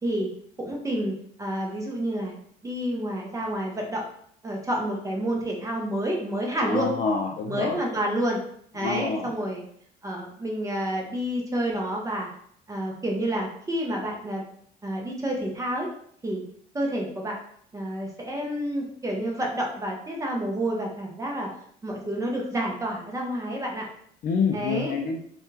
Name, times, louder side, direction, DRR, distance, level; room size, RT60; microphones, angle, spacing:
voice 1, 0.6-2.4 2.6-4.0 4.4-6.9 7.5-8.4 8.7-9.6 10.0-12.3 12.7-14.4 14.8-15.9 16.2-16.4 16.7-17.4 17.7-21.5 21.8-23.9 24.5-24.9, right 1 dB, 20° right, -1 dB, 0.6 m, -29 dB
voice 2, 6.6-7.8 8.8-9.3 24.2-25.2, left 5 dB, 55° left, 2 dB, 0.4 m, -27 dB
3.4 x 2.3 x 2.8 m, 0.65 s
cardioid pair, 110°, 17 cm